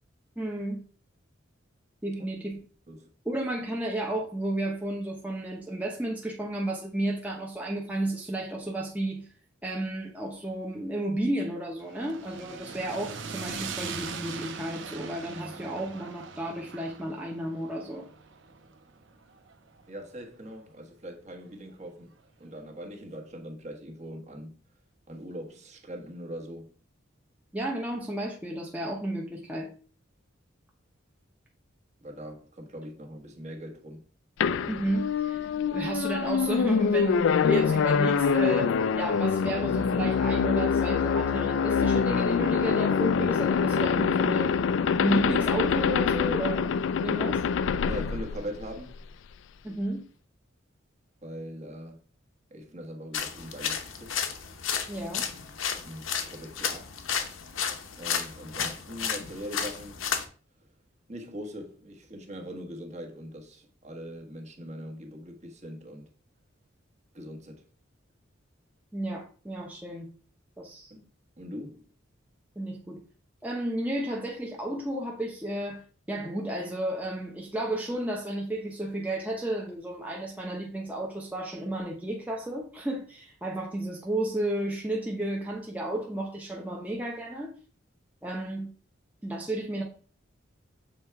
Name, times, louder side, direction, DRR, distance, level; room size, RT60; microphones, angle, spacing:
voice 1, 0.4-0.8 2.0-2.6 3.2-9.3 9.6-18.0 27.5-29.7 34.7-35.4 35.7-44.5 45.0-47.4 49.6-50.0 54.9-55.2 68.9-70.1 70.6-70.9 72.6-73.0 73.4-75.8 76.1-87.5 88.2-88.7 89.2-89.8, right 1 dB, 10° right, 0.8 m, -32 dB
sound 1, 11.8-20.0, right 5 dB, 70° right, 0.9 m, -40 dB
voice 2, 19.9-22.1 22.4-24.6 25.1-26.7 32.0-34.0 47.8-49.0 51.2-52.0 52.5-54.1 55.8-57.0 58.0-60.0 61.1-66.1 67.1-67.6 70.9-71.0 71.4-71.9, equal, 35° right, 1.3 m, -41 dB
sound 2, 34.4-49.0, left 6 dB, 70° left, 0.3 m, -25 dB
sound 3, 53.1-60.3, left 7 dB, 85° left, 0.8 m, -33 dB
7.2 x 3.4 x 4.6 m
head